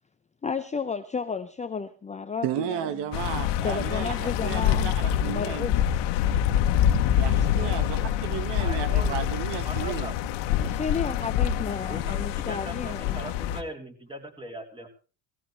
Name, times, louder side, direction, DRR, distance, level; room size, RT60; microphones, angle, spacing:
voice 1, 0.4-2.9 3.6-4.9 5.2-5.8 10.5-13.2, left 5 dB, 15° left, 0.7 m, -32 dB
voice 2, 2.4-5.7 7.1-10.1, right 10 dB, 70° right, 1.6 m, -33 dB
sound 1, 3.1-13.6, left 10 dB, 75° left, 1.6 m, -26 dB
voice 3, 8.6-9.2 9.6-10.1 11.9-14.9, right 1 dB, 10° right, 3.6 m, -39 dB
17.5 x 16.0 x 3.3 m
cardioid pair, 115°, 44 cm